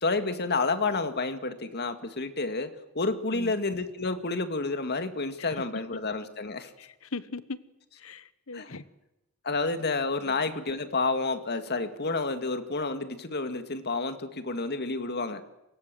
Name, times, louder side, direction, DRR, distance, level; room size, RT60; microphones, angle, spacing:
voice 1, 0.0-6.7 8.5-8.8 9.4-15.4, left 3 dB, 50° left, 2.3 m, -30 dB
voice 2, 6.8-7.6 8.0-8.8 10.2-10.3, left 3 dB, 65° left, 1.3 m, -39 dB
29.0 x 24.5 x 7.8 m
head